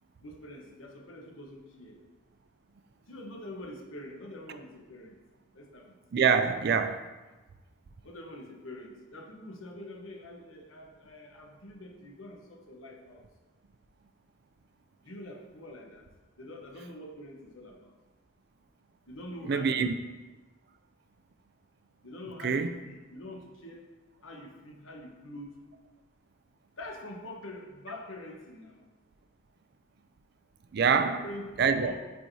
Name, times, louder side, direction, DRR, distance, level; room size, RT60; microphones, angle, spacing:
voice 1, 0.2-2.0 3.1-5.2 5.5-5.9 8.0-13.3 15.0-16.1 16.4-17.9 19.1-20.0 22.0-23.9 24.2-25.6 26.8-28.9 31.1-32.0, left 1 dB, 80° left, 1.0 m, -45 dB
voice 2, 6.1-7.1 19.5-19.9 22.4-22.7 30.7-31.2 31.6-31.9, right 6 dB, 50° right, 0.3 m, -25 dB
8.1 x 4.5 x 2.7 m
head